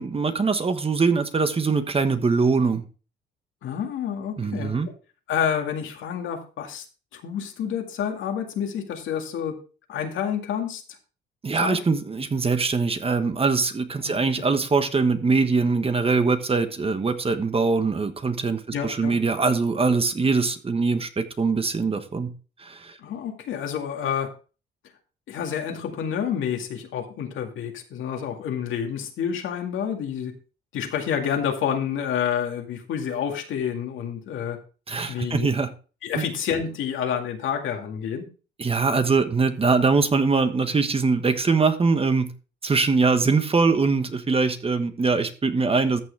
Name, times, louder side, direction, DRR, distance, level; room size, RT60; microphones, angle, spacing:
voice 1, 0.0-2.8 4.4-4.9 11.4-22.3 22.6-23.0 34.9-35.7 36.1-36.3 38.6-42.3 42.6-46.0, right 4 dB, 30° right, 1.3 m, -22 dB
voice 2, 3.6-4.7 5.3-6.8 7.1-9.6 9.9-10.8 11.6-11.8 14.0-14.2 18.7-19.1 23.0-24.3 25.3-30.3 30.7-34.6 35.1-35.5 36.0-38.2, left 8 dB, 80° left, 2.1 m, -28 dB
14.0 x 6.3 x 3.4 m
cardioid pair, 90°, 20 cm